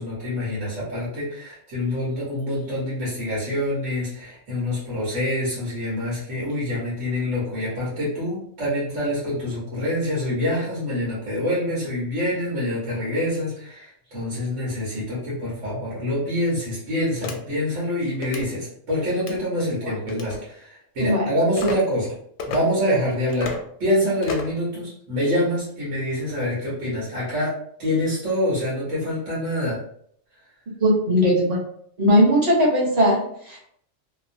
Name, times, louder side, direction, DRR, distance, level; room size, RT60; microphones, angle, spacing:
voice 1, 0.0-22.1 22.4-23.5 23.8-27.5 27.8-29.8, left 1 dB, 90° right, -7 dB, 1.4 m, -26 dB
sound 1, 17.2-17.4 18.2-18.5 19.1-19.4 20.1-20.4 21.6-21.8 22.4-22.6 23.3-23.6 24.2-24.6, left 4 dB, 85° left, 0.9 m, -31 dB
voice 2, 30.8-31.6 32.0-33.6, equal, 40° right, -3 dB, 0.9 m, -19 dB
2.9 x 2.1 x 2.6 m, 0.65 s
omnidirectional pair, 1.2 m